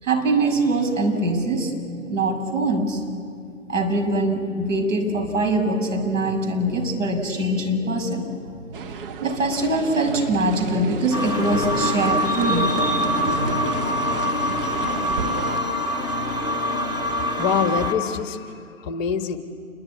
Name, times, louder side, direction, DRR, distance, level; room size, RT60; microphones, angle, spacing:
voice 1, 0.0-1.7 2.0-3.0 3.7-8.3 9.2-13.6, right 2 dB, 70° right, 3 dB, 6.3 m, -23 dB
sound 1, 8.7-15.6, right 5 dB, 45° right, 1.5 m, -33 dB
sound 2, 11.1-17.9, left 1 dB, 10° right, 3.2 m, -24 dB
voice 2, 17.2-19.4, left 7 dB, 25° left, 7 dB, 1.7 m, -26 dB
27.5 x 22.5 x 9.7 m, 2.3 s
figure-of-eight pair, 130°, 39 cm